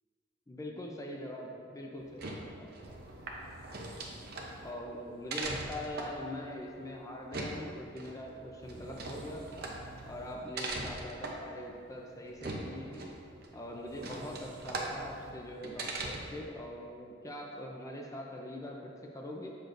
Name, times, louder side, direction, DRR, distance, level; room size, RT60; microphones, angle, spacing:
voice 1, 0.5-2.7 4.6-9.7 10.1-13.1 13.5-19.6, left 1 dB, 20° left, -1 dB, 0.5 m, -43 dB
sound 1, 2.0-16.5, right 2 dB, 55° right, 0.7 m, -41 dB
6.8 x 6.1 x 2.6 m, 2.3 s
head